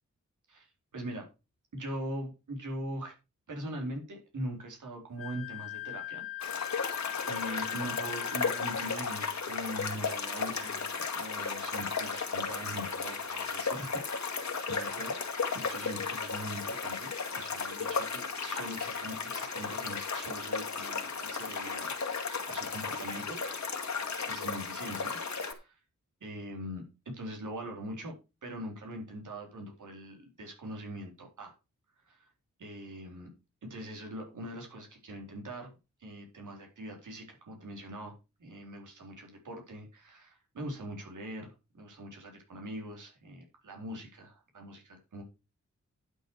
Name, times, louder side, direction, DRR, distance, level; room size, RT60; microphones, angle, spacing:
voice 1, 0.5-1.3 1.7-3.2 3.5-6.8 7.3-14.4 14.7-15.1 15.5-23.4 24.3-25.8 26.2-28.2 28.4-31.5 32.0-32.3 32.6-33.3 33.7-35.7 36.0-45.2, right 1 dB, 85° right, 2 dB, 4.0 m, -42 dB
Wind instrument woodwind instrument, 5.2-9.0, left 18 dB, 50° left, 2.4 m, -41 dB
sound 1, 6.4-25.5, left 5 dB, 65° left, 2.2 m, -35 dB
11.5 x 6.7 x 4.8 m, 0.28 s
wide cardioid pair, 90°, 30 cm